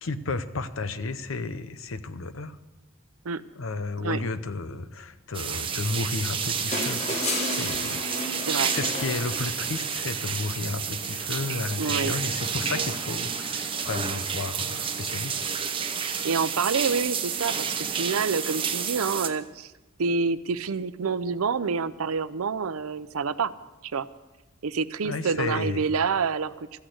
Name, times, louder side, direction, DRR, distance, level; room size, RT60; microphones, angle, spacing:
voice 1, 0.0-2.6 3.6-15.6 25.0-25.9, left 3 dB, 70° left, 12 dB, 0.8 m, -33 dB
sound 1, 5.3-19.3, right 7 dB, 25° right, 0.8 m, -30 dB
sound 2, 6.7-10.1 11.6-11.7, left 2 dB, 30° left, 1.5 m, -32 dB
voice 2, 11.8-12.1 16.2-19.7 20.0-23.5 23.8-24.1 24.6-26.8, right 5 dB, 90° right, 14 dB, 0.6 m, -27 dB
14.0 x 8.8 x 8.0 m, 1.1 s
head